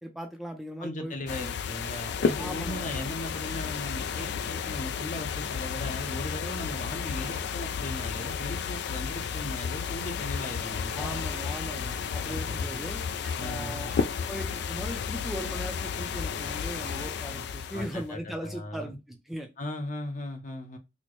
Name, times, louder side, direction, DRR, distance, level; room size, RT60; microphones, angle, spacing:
voice 1, 0.0-1.5 2.4-2.9 11.0-13.0 13.4-13.9 14.3-19.5, equal, ahead, 0.5 m, -39 dB
voice 2, 0.8-11.2 12.2-12.9 13.4-13.9 17.7-19.0 19.6-20.8, left 1 dB, 40° left, 0.7 m, -38 dB
sound 1, 1.3-18.1, left 6 dB, 60° left, 0.3 m, -32 dB
sound 2, 11.2-17.8, right 2 dB, 55° right, 0.7 m, -56 dB
4.2 x 2.1 x 3.0 m
head